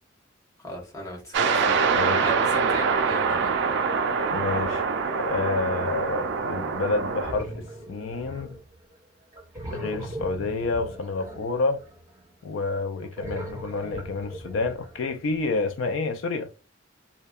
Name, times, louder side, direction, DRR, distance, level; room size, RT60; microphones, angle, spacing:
voice 1, 0.6-1.8 2.2-3.5, right 1 dB, 15° left, 0.9 m, -36 dB
sound 1, 1.3-7.3, right 5 dB, 65° right, 0.3 m, -24 dB
voice 2, 1.9-2.3 4.3-4.8 5.2-8.6 9.7-11.8 12.4-16.5, left 3 dB, 75° left, 0.3 m, -29 dB
sound 2, 2.6-3.9 4.5-4.9 7.2-9.0 9.3-12.2 13.0-15.5, right 1 dB, 15° right, 0.9 m, -40 dB
2.7 x 2.1 x 2.2 m
head